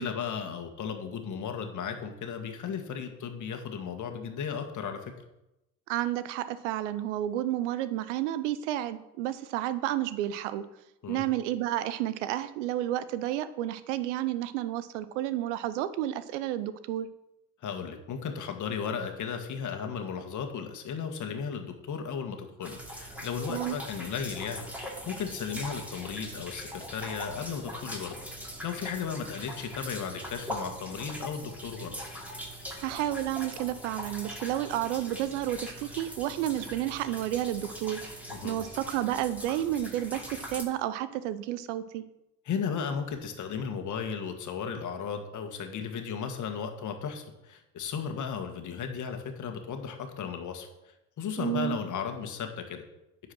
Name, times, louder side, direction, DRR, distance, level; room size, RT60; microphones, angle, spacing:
voice 1, 0.0-5.1 11.0-11.3 17.6-24.7 25.1-28.2 28.6-32.0 38.3-38.6 42.5-50.7 51.2-52.8, left 6 dB, 55° left, 6 dB, 1.7 m, -35 dB
voice 2, 5.9-10.6 11.1-17.1 23.5-23.8 32.8-38.0 38.4-42.0 51.4-51.8, right 13 dB, 80° right, 14 dB, 0.7 m, -31 dB
sound 1, 22.6-40.6, equal, 5° right, 3.1 m, -41 dB
9.9 x 4.8 x 6.1 m, 0.91 s
hypercardioid pair, 55°, 36 cm